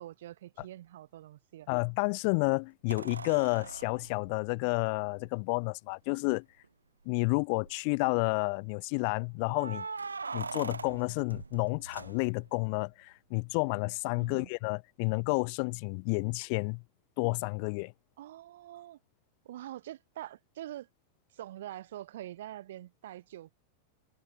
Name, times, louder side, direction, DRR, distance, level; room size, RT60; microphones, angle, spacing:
voice 1, 0.0-1.7 14.2-14.5 18.2-19.0 19.4-20.9 21.3-23.5, right 13 dB, 60° right, 5.4 m, -45 dB
sound 1, 0.6-0.7 2.9-5.3 6.2-6.3 6.6-6.7 7.3-7.8 9.5-12.6 15.1-15.2, right 4 dB, 75° right, 2.4 m, -42 dB
voice 2, 1.7-6.4 7.1-9.9 10.3-16.8 17.2-17.9, left 38 dB, 45° left, 0.4 m, -30 dB
figure-of-eight pair, 90°, 0 cm